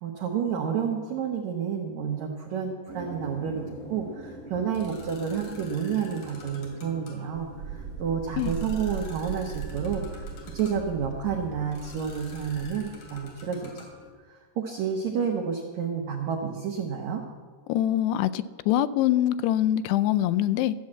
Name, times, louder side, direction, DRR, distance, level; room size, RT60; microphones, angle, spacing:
voice 1, 0.0-13.9 14.3-17.2, right 7 dB, 80° right, 1 dB, 1.6 m, -30 dB
sound 1, 2.9-14.1, left 1 dB, 55° left, 3.7 m, -44 dB
Wind, 7.3-13.3, right 6 dB, 55° right, 1.8 m, -39 dB
voice 2, 17.7-20.8, left 12 dB, 90° left, 13 dB, 2.6 m, -24 dB
14.0 x 7.4 x 7.7 m, 1.5 s
omnidirectional pair, 4.7 m